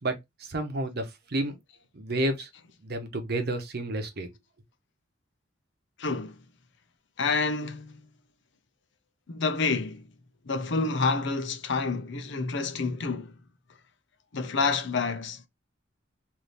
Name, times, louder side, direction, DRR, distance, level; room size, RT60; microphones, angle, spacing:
voice 1, 0.0-1.6 1.9-2.5 2.8-4.3, right 1 dB, 55° right, 0.9 m, -31 dB
voice 2, 6.0-6.4 7.2-8.1 9.3-10.1 10.4-13.4 14.3-15.5, left 4 dB, 65° left, 0.7 m, -28 dB
3.4 x 2.7 x 3.9 m
head